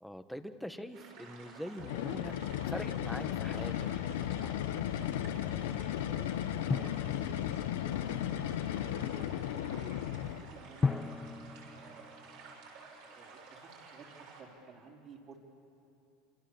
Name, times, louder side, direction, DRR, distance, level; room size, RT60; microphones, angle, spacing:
voice 1, 0.0-3.9 4.2-4.5, equal, ahead, 8 dB, 1.2 m, -43 dB
sound 1, 0.9-14.4, right 4 dB, 65° right, 7.0 m, -53 dB
sound 2, 1.8-10.6, left 11 dB, 85° left, 1.0 m, -35 dB
voice 2, 5.4-8.2 9.0-11.2 11.7-12.3 13.0-14.1 14.4-15.4, right 4 dB, 40° right, 0 dB, 4.4 m, -55 dB
Drum, 6.7-8.2 10.8-13.0, left 4 dB, 15° left, 0.7 m, -37 dB
27.5 x 27.0 x 7.4 m, 2.7 s
supercardioid pair, 130°, 0 cm